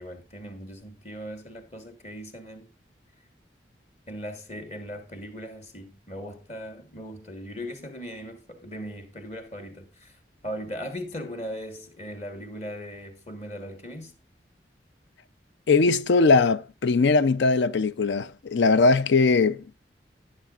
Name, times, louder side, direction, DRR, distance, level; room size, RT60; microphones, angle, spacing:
voice 1, 0.0-2.7 4.1-14.1, equal, 40° left, 1.4 m, -39 dB
voice 2, 15.7-19.6, left 4 dB, 80° left, 0.5 m, -20 dB
13.0 x 9.9 x 2.4 m
head